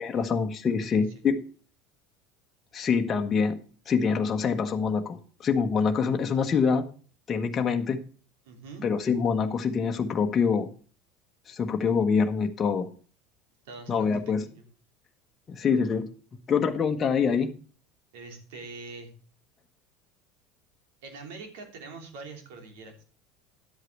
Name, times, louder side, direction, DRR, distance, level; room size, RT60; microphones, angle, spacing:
voice 1, 0.0-1.4 2.7-3.6 3.9-6.8 7.3-8.0 8.8-10.7 11.5-12.9 13.9-14.4 15.5-16.1 16.5-17.5, left 6 dB, 35° left, 4 dB, 1.3 m, -25 dB
voice 2, 8.4-8.9 13.6-14.1 14.4-14.7 18.1-19.1 21.0-23.0, right 4 dB, 70° right, 4 dB, 3.0 m, -44 dB
11.0 x 8.1 x 4.7 m, 0.40 s
hypercardioid pair, 75°, 0 cm